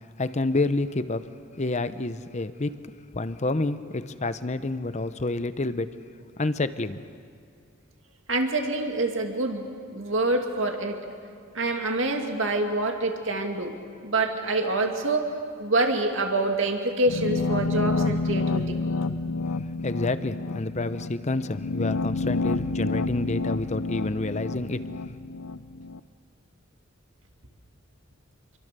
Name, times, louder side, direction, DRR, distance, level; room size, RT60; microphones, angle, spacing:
voice 1, 0.2-1.3 1.6-2.8 3.1-5.9 6.4-7.0 19.8-24.8, left 2 dB, 35° left, 12 dB, 0.8 m, -28 dB
voice 2, 8.3-11.1 11.5-15.3 15.6-18.7, right 2 dB, 65° right, 3 dB, 2.4 m, -26 dB
sound 1, 17.1-26.0, left 3 dB, 80° left, 0.7 m, -29 dB
28.0 x 23.5 x 6.8 m, 2.3 s
head